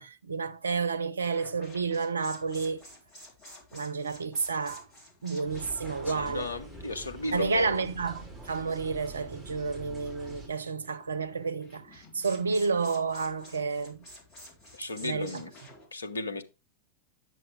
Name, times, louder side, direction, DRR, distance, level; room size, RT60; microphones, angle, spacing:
voice 1, 0.0-2.8 3.7-4.8 5.2-6.5 7.3-14.1 15.0-15.4, right 4 dB, 75° right, 0.5 m, -30 dB
sound 1, 1.2-15.9, left 1 dB, 30° left, 3.6 m, -52 dB
sound 2, 5.5-10.5, right 1 dB, ahead, 3.5 m, -45 dB
voice 2, 6.1-7.8 14.7-15.5 15.9-16.4, left 3 dB, 75° left, 0.8 m, -35 dB
8.9 x 6.2 x 3.3 m
figure-of-eight pair, 90°, 0 cm